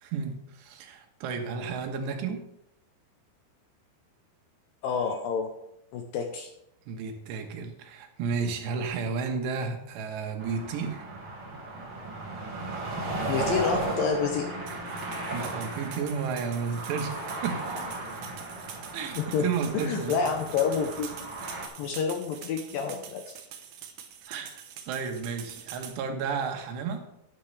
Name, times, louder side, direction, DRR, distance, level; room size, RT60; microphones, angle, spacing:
voice 1, 0.0-2.4 6.9-11.1 15.3-17.7 18.9-20.3 24.3-27.0, right 5 dB, 90° right, 5 dB, 3.4 m, -32 dB
voice 2, 4.8-5.5 5.9-6.5 13.3-14.5 19.2-19.5 19.7-21.1 21.8-23.4, left 6 dB, 80° left, 4 dB, 2.1 m, -28 dB
sound 1, 10.4-21.7, right 2 dB, 50° right, 1.5 m, -35 dB
sound 2, 14.7-26.0, right 9 dB, 70° right, 2.1 m, -45 dB
11.0 x 10.0 x 3.3 m, 0.81 s
omnidirectional pair, 4.8 m